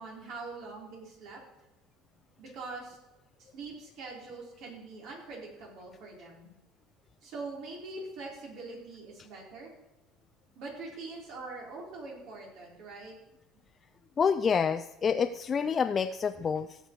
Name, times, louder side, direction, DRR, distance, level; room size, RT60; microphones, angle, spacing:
voice 1, 0.0-1.4 2.4-3.0 3.4-6.5 7.2-9.7 10.6-13.2, right 3 dB, 65° right, -1 dB, 4.4 m, -43 dB
voice 2, 14.2-16.8, left 6 dB, 30° left, 7 dB, 0.4 m, -28 dB
17.0 x 6.7 x 4.7 m, 0.93 s
supercardioid pair, 110°, 0 cm